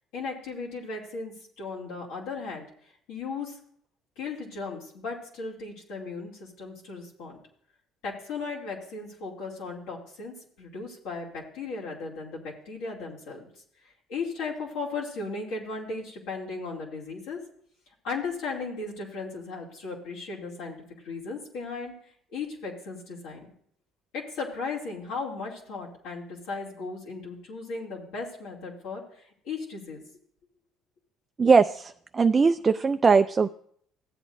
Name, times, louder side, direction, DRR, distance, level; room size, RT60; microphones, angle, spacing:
voice 1, 0.1-2.6 3.1-3.6 4.2-7.4 8.0-13.5 14.1-17.4 18.0-20.8 21.0-21.9 22.3-23.5 24.1-30.0, left 4 dB, 75° left, -3 dB, 2.7 m, -36 dB
voice 2, 31.4-33.5, right 5 dB, 30° right, 9 dB, 0.4 m, -20 dB
15.0 x 8.2 x 2.7 m, 0.63 s
supercardioid pair, 75°, 0 cm